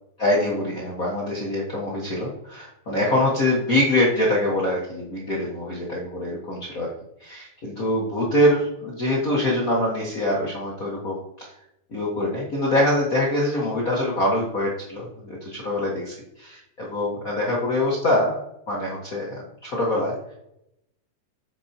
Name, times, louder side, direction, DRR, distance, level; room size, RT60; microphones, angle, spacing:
voice 1, 0.2-6.9 7.2-11.5 11.9-18.4 18.7-20.3, left 1 dB, 45° left, -4 dB, 1.1 m, -24 dB
8.3 x 6.8 x 2.9 m, 0.79 s
omnidirectional pair, 3.5 m